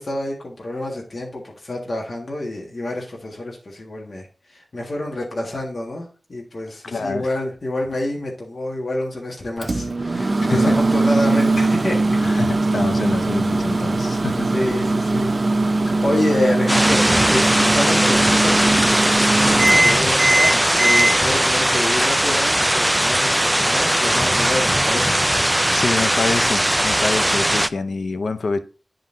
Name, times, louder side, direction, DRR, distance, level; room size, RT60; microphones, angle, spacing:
voice 1, 0.0-12.0 13.7-13.8 14.5-15.3 15.6-17.0 17.3-25.2, left 1 dB, 65° left, -1 dB, 1.6 m, -28 dB
voice 2, 6.8-7.3 10.5-10.8 12.2-14.5 25.7-28.6, left 3 dB, 85° left, 10 dB, 0.5 m, -26 dB
Microwave oven, 9.6-21.1, right 2 dB, 55° right, 0.6 m, -20 dB
sound 1, 16.7-27.7, right 1 dB, 10° right, 0.4 m, -19 dB
10.0 x 3.9 x 2.6 m, 0.36 s
cardioid pair, 45°, 0 cm